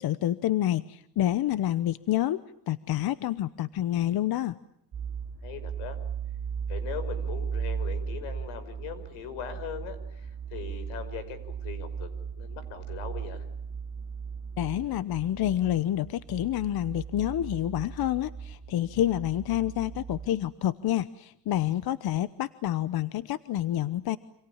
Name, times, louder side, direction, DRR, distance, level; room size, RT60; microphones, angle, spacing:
voice 1, 0.0-4.6 14.6-24.2, left 13 dB, 50° left, 15 dB, 1.0 m, -28 dB
sound 1, 4.9-20.3, right 6 dB, 40° right, 2.4 m, -37 dB
voice 2, 5.4-6.0 6.7-12.1 12.4-13.5, left 8 dB, 80° left, 13 dB, 5.8 m, -40 dB
28.0 x 27.0 x 7.3 m, 0.75 s
cardioid pair, 120°, 47 cm